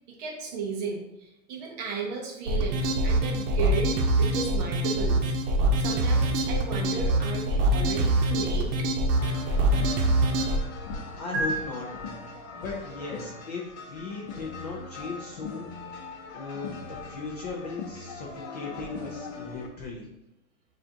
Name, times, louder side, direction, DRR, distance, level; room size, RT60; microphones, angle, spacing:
voice 1, 0.1-5.3 5.8-8.9, right 4 dB, 30° right, 0 dB, 0.6 m, -35 dB
sound 1, 2.5-10.6, right 1 dB, 65° right, 0.9 m, -24 dB
sound 2, 2.8-11.0 11.3-11.5, right 1 dB, 50° right, 1.4 m, -42 dB
sound 3, 9.2-19.7, left 4 dB, 45° left, 0.7 m, -41 dB
voice 2, 11.2-12.0 12.6-15.7 16.3-20.1, left 3 dB, 30° left, -2 dB, 0.4 m, -37 dB
6.7 x 2.5 x 2.7 m, 0.87 s
hypercardioid pair, 155°, 45 cm